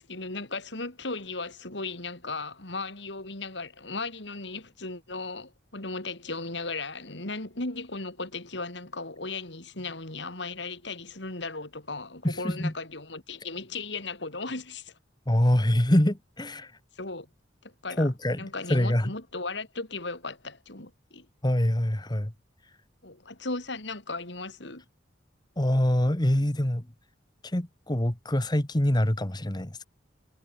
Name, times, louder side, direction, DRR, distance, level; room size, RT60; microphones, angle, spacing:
voice 1, 0.0-14.9 17.0-17.3 17.6-18.1 18.4-21.3 23.0-24.8, left 3 dB, 65° left, 3.7 m, -36 dB
voice 2, 12.2-12.7 15.3-16.7 18.0-19.1 21.4-22.3 25.6-26.8 27.5-29.9, left 1 dB, 25° left, 1.6 m, -25 dB
head